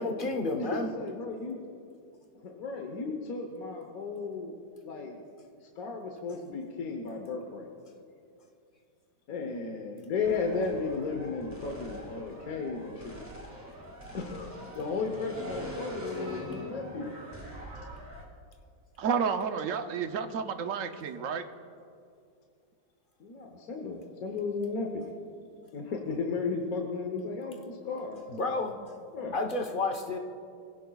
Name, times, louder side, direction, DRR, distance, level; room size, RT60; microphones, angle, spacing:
voice 1, 0.0-0.9 28.3-28.8 29.3-30.2, left 2 dB, 35° left, 3 dB, 0.9 m, -30 dB
voice 2, 0.6-1.6 2.4-4.6 4.8-5.2 5.8-7.7 9.3-13.2 13.8-17.1 23.2-25.1 25.7-28.2 29.1-29.4, left 4 dB, 55° left, 3 dB, 1.4 m, -34 dB
sound 1, 10.2-18.3, equal, 10° right, 1.8 m, -43 dB
voice 3, 19.0-21.4, right 6 dB, 60° right, 8 dB, 0.9 m, -31 dB
23.5 x 16.5 x 2.3 m, 2.5 s
omnidirectional pair, 1.9 m